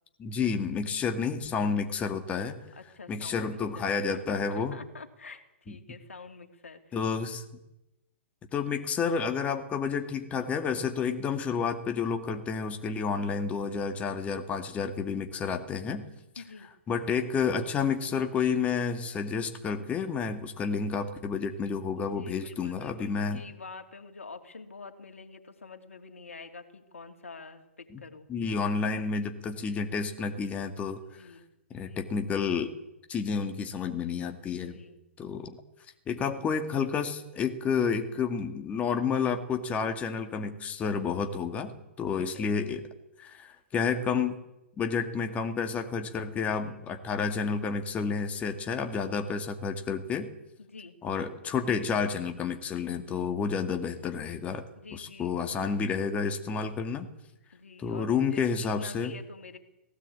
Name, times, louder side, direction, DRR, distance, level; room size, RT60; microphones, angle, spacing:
voice 1, 0.2-2.6 3.1-4.7 6.9-7.4 8.5-16.1 16.9-23.4 27.9-28.0 28.3-31.0 31.7-32.7 33.1-34.8 35.2-35.6 36.1-42.8 43.2-44.3 44.8-50.3 51.0-54.6 54.9-57.1 57.8-59.1, left 5 dB, 20° left, 6 dB, 2.2 m, -30 dB
voice 2, 2.7-7.0 13.0-13.4 16.4-16.7 22.0-28.3 31.1-31.5 31.8-32.1 34.5-35.0 42.1-42.5 46.5-46.8 50.6-51.0 54.8-55.3 57.5-59.6, left 4 dB, 85° left, 5 dB, 2.8 m, -47 dB
18.5 x 17.5 x 8.7 m, 0.91 s
hypercardioid pair, 125°, 7 cm